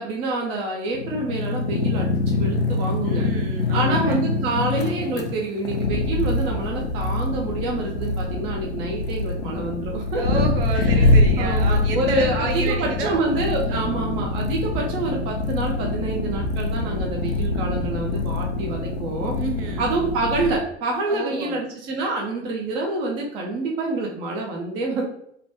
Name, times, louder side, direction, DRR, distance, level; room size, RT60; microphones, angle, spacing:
voice 1, 0.0-3.3 3.7-10.2 10.7-19.4 19.8-25.0, right 2 dB, 15° right, -1 dB, 0.3 m, -27 dB
sound 1, 0.9-20.5, left 2 dB, 65° left, 0.6 m, -24 dB
voice 2, 2.8-4.2 10.2-13.2 13.6-14.0 19.4-19.8 21.1-21.6, right 3 dB, 50° right, 2 dB, 0.8 m, -31 dB
3.2 x 2.1 x 2.9 m, 0.69 s
figure-of-eight pair, 95°, 35 cm